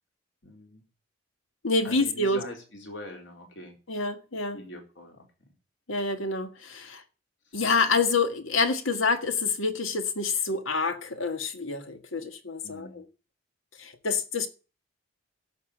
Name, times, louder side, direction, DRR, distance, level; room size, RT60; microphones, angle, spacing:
voice 1, 0.4-0.8 1.8-3.7 4.5-5.2 12.6-13.0, left 1 dB, 65° left, 4.0 m, -42 dB
voice 2, 1.6-2.4 3.9-4.6 5.9-7.0 7.5-13.1 13.8-14.5, left 4 dB, 85° left, 1.7 m, -27 dB
12.0 x 6.8 x 8.9 m
head